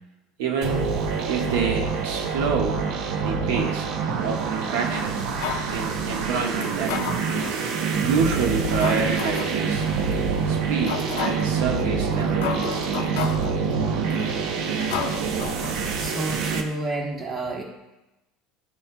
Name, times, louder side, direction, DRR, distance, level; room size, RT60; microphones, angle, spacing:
voice 1, 0.4-0.9 1.3-2.9 3.2-3.9 4.2-5.3 5.7-7.4 8.0-9.9 10.5-13.4, right 5 dB, 90° right, 1 dB, 1.4 m, -28 dB
sound 1, 0.6-16.6, right 5 dB, 65° right, 0.9 m, -26 dB
sound 2, 5.4-5.7 6.6-7.6 8.2-8.3 8.8-9.6 10.1-10.2 10.9-11.5 12.1-12.2 12.4-13.5 14.1-14.4 14.9-16.1 16.4-16.5, left 8 dB, 85° left, 0.6 m, -32 dB
voice 2, 15.9-17.6, right 2 dB, 25° right, -1 dB, 1.4 m, -29 dB
12.5 x 4.3 x 2.3 m, 0.97 s
cardioid pair, 155°, 0 cm